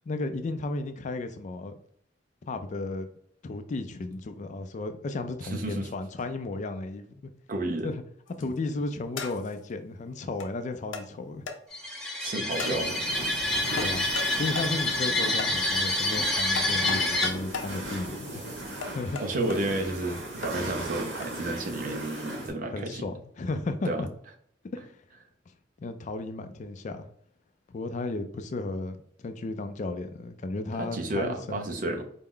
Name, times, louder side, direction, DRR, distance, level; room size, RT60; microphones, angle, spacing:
voice 1, 0.1-1.7 2.4-3.1 3.4-7.2 7.8-8.0 8.4-11.5 13.7-14.1 14.4-18.4 18.9-19.2 22.7-24.1 24.7-24.8 25.8-27.1 27.7-31.7, left 2 dB, 40° left, 8 dB, 0.4 m, -34 dB
voice 2, 5.4-5.9 7.5-7.9 12.2-12.9 13.2-13.8 19.2-23.1 23.8-24.0 30.8-32.0, right 1 dB, 45° right, 4 dB, 0.6 m, -31 dB
sound 1, 8.3-8.6 9.2-9.6 10.4-10.5 10.9-11.1 11.5-11.6 12.6-12.8 13.8-14.3 14.5-14.7 15.4-15.5 16.5-17.7 18.8-19.6 20.4-20.5 21.2-21.3, left 5 dB, 90° left, 0.6 m, -36 dB
sound 2, 11.7-17.3, left 1 dB, 5° left, 0.7 m, -27 dB
sound 3, 12.5-22.5, right 1 dB, 85° right, 1.2 m, -38 dB
4.4 x 2.0 x 3.7 m, 0.65 s
head